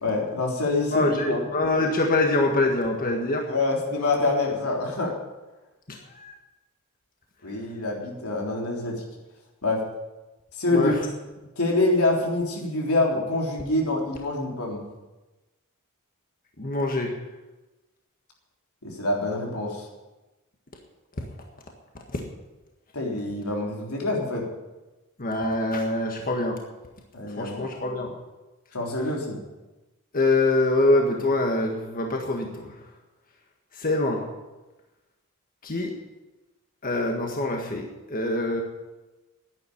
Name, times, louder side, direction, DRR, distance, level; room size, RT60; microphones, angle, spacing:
voice 1, 0.0-1.4 3.4-5.1 7.4-9.0 9.6-9.8 10.5-10.9 11.6-14.9 18.8-19.9 22.9-24.5 27.1-27.6 28.7-29.4, left 2 dB, 90° left, -1 dB, 3.6 m, -26 dB
voice 2, 0.9-3.5 5.9-6.3 10.7-11.0 16.6-17.2 21.2-21.3 22.1-22.2 25.2-26.6 27.3-28.1 30.1-32.8 33.7-34.2 35.6-35.9 36.8-38.6, left 2 dB, 40° left, 2 dB, 1.6 m, -24 dB
10.5 x 10.0 x 9.9 m, 1.1 s
head